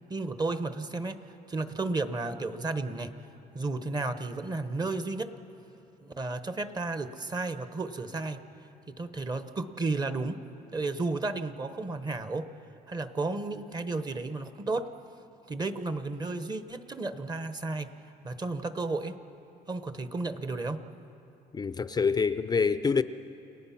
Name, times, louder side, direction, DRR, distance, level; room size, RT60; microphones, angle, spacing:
voice 1, 0.1-3.1 3.5-5.3 6.0-8.5 8.9-10.4 10.7-12.5 12.9-14.9 15.5-17.9 18.2-19.2 19.7-20.9, right 3 dB, 25° right, 1.0 m, -33 dB
voice 2, 21.5-23.0, left 5 dB, 25° left, 0.5 m, -26 dB
30.0 x 18.5 x 5.9 m
cardioid pair, 110°, 17 cm